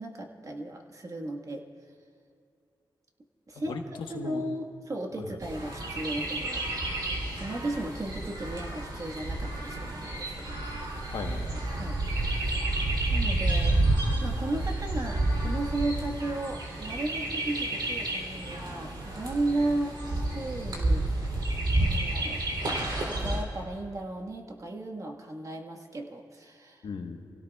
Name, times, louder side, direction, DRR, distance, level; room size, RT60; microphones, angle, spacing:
voice 1, 0.0-1.6 3.5-3.8 4.1-6.7 7.3-10.3 11.8-12.0 12.5-13.7 14.2-20.0 20.3-21.0 21.8-22.4 23.1-26.9, right 2 dB, 40° right, 2 dB, 1.6 m, -35 dB
voice 2, 3.7-4.4 5.1-5.4 11.1-11.6 26.8-27.3, left 4 dB, 85° left, 3 dB, 1.3 m, -38 dB
Chirp tweet, 5.4-23.4, right 2 dB, 60° right, 3.3 m, -30 dB
29.0 x 17.0 x 2.4 m, 2.4 s
cardioid pair, 85°, 8 cm